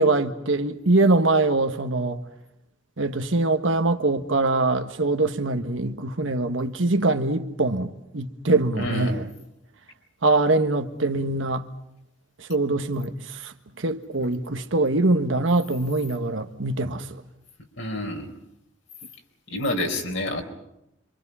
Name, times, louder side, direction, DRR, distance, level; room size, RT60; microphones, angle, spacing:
voice 1, 0.0-2.2 3.0-9.3 10.2-11.6 12.4-17.2, right 2 dB, 80° right, 1.5 m, -23 dB
voice 2, 8.7-9.2 14.2-14.3 17.8-18.3 19.5-20.4, left 1 dB, 70° left, 4.4 m, -28 dB
27.0 x 25.0 x 5.6 m
head